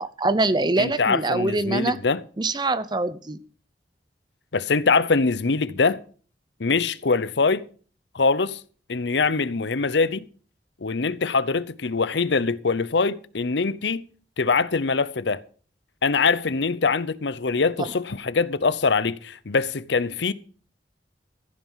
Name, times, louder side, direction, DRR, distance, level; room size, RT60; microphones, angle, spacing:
voice 1, 0.0-2.0 2.4-3.4 17.8-17.9, right 2 dB, 25° right, 0.7 m, -24 dB
voice 2, 0.8-2.2 4.5-6.0 6.6-7.6 8.1-8.6 8.9-10.2 10.8-14.0 14.4-15.4 16.0-20.3, left 4 dB, 75° left, 0.7 m, -23 dB
15.0 x 9.2 x 5.7 m
head